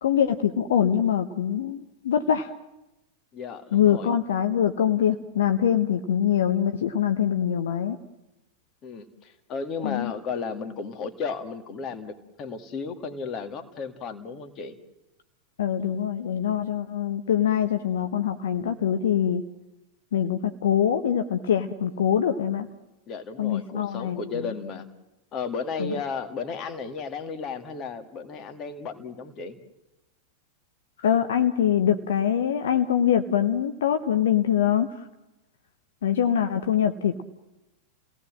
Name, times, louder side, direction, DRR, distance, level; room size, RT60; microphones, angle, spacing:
voice 1, 0.0-2.5 3.7-8.0 9.8-10.1 15.6-19.4 20.1-22.7 23.4-24.5 25.8-25.9 31.0-35.1 36.0-37.2, left 9 dB, 60° left, 9 dB, 1.0 m, -24 dB
voice 2, 3.3-4.1 8.8-14.8 23.1-24.9 25.3-29.6, left 5 dB, 35° left, 7 dB, 2.3 m, -34 dB
30.0 x 18.0 x 7.7 m, 0.97 s
figure-of-eight pair, 90°, 0 cm